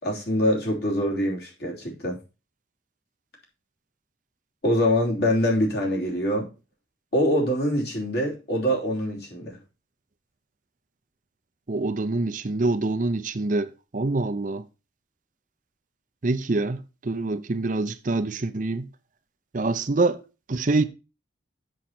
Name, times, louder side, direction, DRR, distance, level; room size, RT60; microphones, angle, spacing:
voice 1, 0.0-2.2 4.6-6.5 7.1-9.6, equal, 60° left, 3.1 m, -24 dB
voice 2, 11.7-14.6 16.2-18.9 19.5-20.2 20.5-20.8, right 2 dB, 45° right, 0.6 m, -25 dB
7.7 x 6.6 x 4.2 m
head